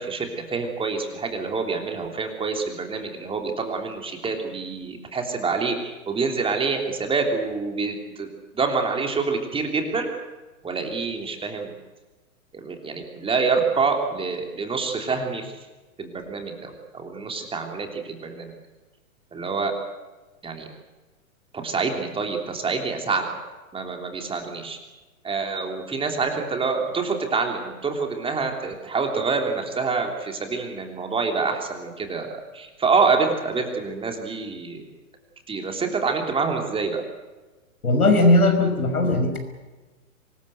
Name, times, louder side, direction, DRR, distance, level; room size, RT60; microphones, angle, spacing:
voice 1, 0.0-8.3 8.5-10.1 10.6-11.7 12.5-15.5 16.0-18.5 19.3-19.7 20.4-20.7 21.5-23.2 23.7-24.8 25.2-34.8 35.5-37.0, right 4 dB, 10° right, 3 dB, 3.3 m, -26 dB
voice 2, 37.8-39.4, left 2 dB, 90° left, 6 dB, 5.7 m, -18 dB
24.5 x 21.0 x 8.0 m, 1.2 s
hypercardioid pair, 125°, 43 cm